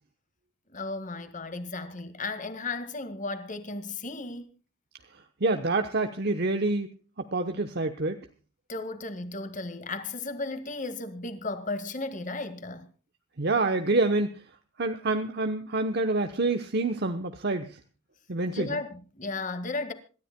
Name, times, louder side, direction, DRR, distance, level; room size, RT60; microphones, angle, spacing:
voice 1, 0.7-4.6 8.7-12.9 18.5-19.9, left 3 dB, 35° left, 1.8 m, -35 dB
voice 2, 5.4-6.9 7.2-8.2 13.4-14.4 14.8-17.8 18.3-18.7, right 2 dB, 50° right, 0.9 m, -27 dB
26.5 x 13.0 x 2.2 m
head